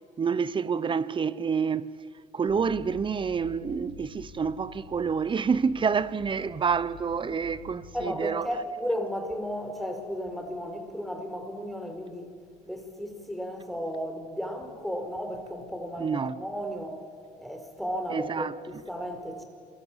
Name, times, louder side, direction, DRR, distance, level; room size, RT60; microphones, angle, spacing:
voice 1, 0.2-1.9 2.3-8.5 16.0-16.4 18.1-18.8, right 6 dB, 30° right, 1.0 m, -28 dB
sound 1, 2.5-8.1, left 7 dB, 65° left, 3.5 m, -48 dB
voice 2, 7.9-12.3 12.7-17.0 17.3-19.4, equal, ahead, 4.5 m, -34 dB
28.5 x 24.0 x 7.5 m
cardioid pair, 110°, 17 cm